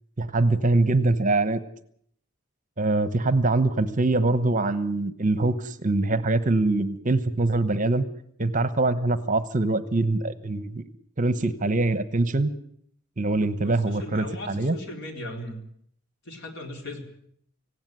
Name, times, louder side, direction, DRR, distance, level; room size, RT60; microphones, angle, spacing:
voice 1, 0.2-1.6 2.8-8.0 8.4-10.9 11.2-12.5 13.2-14.7, right 2 dB, 40° right, 13 dB, 1.1 m, -23 dB
voice 2, 13.6-15.6 16.2-17.0, left 1 dB, 55° left, 3 dB, 4.2 m, -37 dB
18.5 x 16.5 x 9.3 m, 0.66 s
head